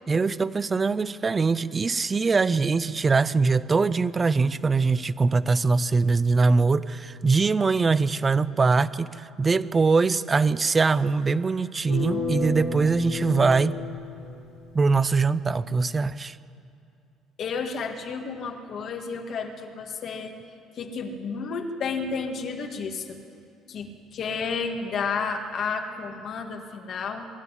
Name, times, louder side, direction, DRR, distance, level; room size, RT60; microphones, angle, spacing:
voice 1, 0.1-13.8 14.7-16.4, right 4 dB, 20° right, 16 dB, 0.4 m, -22 dB
sound 1, 11.9-14.9, left 3 dB, 80° left, 5.2 m, -31 dB
voice 2, 17.4-20.3 20.8-23.2 23.7-27.3, left 5 dB, 40° left, 4 dB, 1.7 m, -31 dB
23.5 x 12.0 x 9.8 m, 2.6 s
cardioid pair, 165°, 0 cm